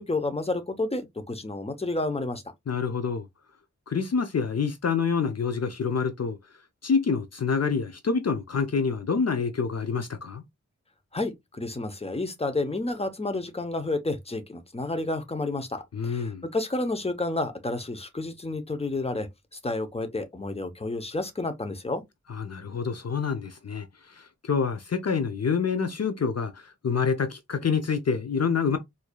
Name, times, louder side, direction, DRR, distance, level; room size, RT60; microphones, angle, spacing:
voice 1, 0.0-2.4 11.1-19.3 19.6-22.0, left 2 dB, 20° left, 0.7 m, -30 dB
voice 2, 2.7-3.3 3.9-6.4 6.8-10.4 15.9-16.4 22.3-28.8, left 5 dB, 60° left, 0.5 m, -27 dB
4.6 x 2.7 x 2.2 m
wide cardioid pair, 60°, 29 cm